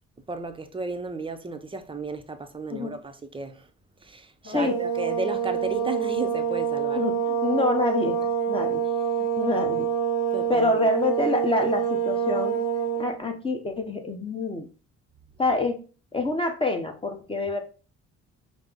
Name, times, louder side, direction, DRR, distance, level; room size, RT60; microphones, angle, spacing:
voice 1, 0.3-3.7 4.0-7.1 10.3-10.7, right 3 dB, 15° right, 0.5 m, -34 dB
sound 1, 4.4-13.2, right 8 dB, 45° left, 1.9 m, -26 dB
voice 2, 7.0-8.2 8.5-8.8 9.4-9.9 10.5-12.6 13.0-14.7 15.4-15.8 16.1-17.6, left 3 dB, 20° left, 0.8 m, -26 dB
5.1 x 2.0 x 3.5 m
cardioid pair, 90°, 30 cm